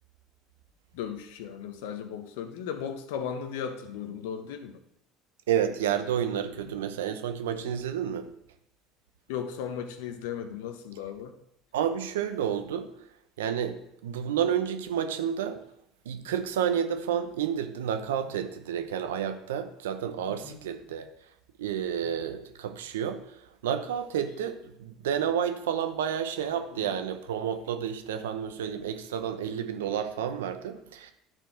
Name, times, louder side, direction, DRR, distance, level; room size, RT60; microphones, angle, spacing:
voice 1, 0.9-4.8 6.6-6.8 7.7-7.8 9.3-11.3 20.3-20.6 26.7-26.9, left 8 dB, 75° left, 7 dB, 1.0 m, -36 dB
voice 2, 5.5-8.3 11.7-12.9 13.4-15.6 16.1-21.1 21.6-23.2 23.6-31.1, right 8 dB, 85° right, 8 dB, 0.8 m, -30 dB
10.5 x 4.6 x 4.5 m, 0.77 s
hypercardioid pair, 75°, 0 cm